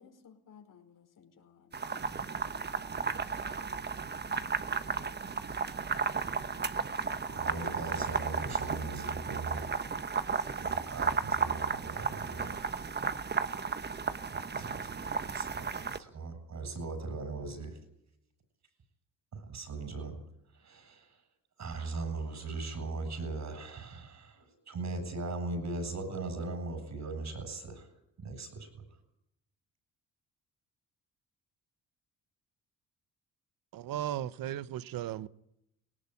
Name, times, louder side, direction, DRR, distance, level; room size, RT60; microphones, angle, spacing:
voice 1, 0.0-2.7, left 7 dB, 65° left, 4.9 m, -58 dB
sound 1, 1.7-16.0, right 5 dB, 30° right, 1.2 m, -34 dB
voice 2, 7.3-9.7 10.6-12.9 14.3-17.8 19.3-20.2 20.5-21.2 21.6-27.9 28.2-28.8, right 3 dB, 55° right, 7.8 m, -39 dB
voice 3, 33.7-35.3, right 12 dB, 75° right, 1.0 m, -36 dB
19.0 x 18.5 x 9.7 m
cardioid pair, 85°, 34 cm